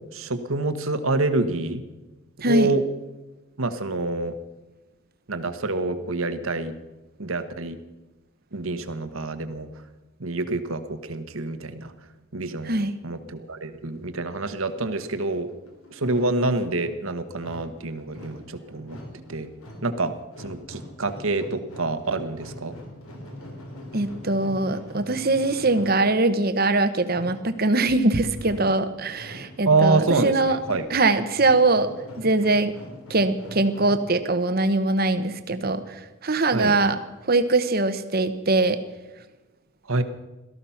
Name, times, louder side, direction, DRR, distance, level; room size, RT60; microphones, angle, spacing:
voice 1, 0.1-1.8 2.4-2.8 3.6-4.3 5.3-6.7 7.2-7.8 8.5-9.7 10.2-11.9 12.3-12.7 13.0-15.5 15.9-19.0 19.3-19.5 19.8-22.7 29.7-30.3 30.7-30.9 36.5-36.7 39.9-40.0, right 3 dB, 70° right, 10 dB, 1.3 m, -26 dB
voice 2, 12.6-12.9 23.9-30.6 30.9-31.9 32.2-32.7 33.1-37.0 37.3-38.8, right 2 dB, 45° right, 10 dB, 1.1 m, -22 dB
sound 1, 15.5-34.1, left 1 dB, 80° left, 3.8 m, -43 dB
17.5 x 14.0 x 5.8 m, 1.1 s
head